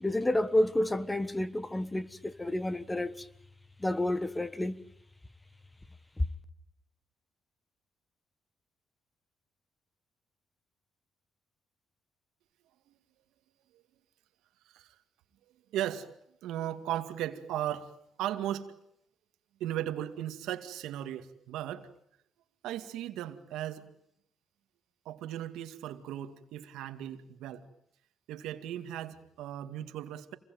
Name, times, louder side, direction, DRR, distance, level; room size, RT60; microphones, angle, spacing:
voice 1, 0.0-3.1 3.8-4.8, left 1 dB, 15° left, 1.4 m, -30 dB
voice 2, 15.7-16.1 16.4-17.9 18.2-18.7 19.6-21.9 22.6-23.9 25.1-27.6 28.3-30.4, right 12 dB, 90° right, 2.1 m, -36 dB
28.0 x 22.0 x 9.4 m
cardioid pair, 90°, 0 cm